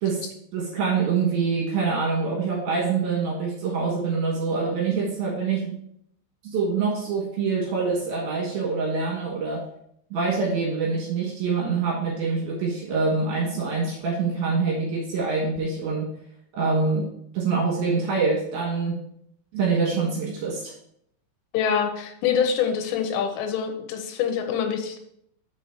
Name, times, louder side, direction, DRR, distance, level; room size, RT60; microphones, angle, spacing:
voice 1, 0.0-5.7 6.4-9.6 10.1-16.1 16.5-17.1 17.3-19.0 19.5-20.7, right 4 dB, 65° right, -2 dB, 2.7 m, -25 dB
voice 2, 21.5-25.0, left 7 dB, 80° left, 5 dB, 3.3 m, -25 dB
6.7 x 6.1 x 4.5 m, 0.72 s
omnidirectional pair, 5.8 m